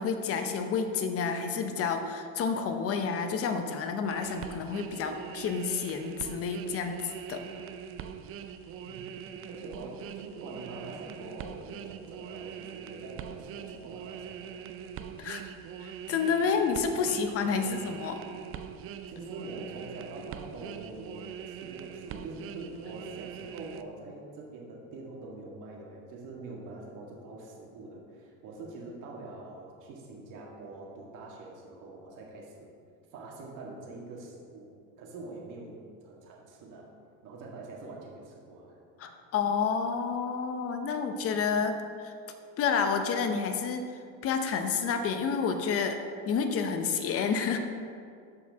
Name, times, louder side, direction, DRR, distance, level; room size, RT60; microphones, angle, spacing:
voice 1, 0.0-7.4 15.2-15.5 15.8-18.2 39.0-41.8 42.0-42.1 42.6-43.8 44.2-46.0 46.3-47.6, left 5 dB, 40° left, 6 dB, 0.9 m, -29 dB
sound 1, 4.1-23.8, right 8 dB, 40° right, 0.4 m, -42 dB
voice 2, 9.5-14.7 17.0-17.1 17.6-17.8 19.1-32.7 33.1-34.7 35.0-36.9 37.2-38.8, right 2 dB, 55° right, -2 dB, 2.0 m, -44 dB
13.0 x 4.8 x 3.6 m, 2.3 s
supercardioid pair, 125°, 37 cm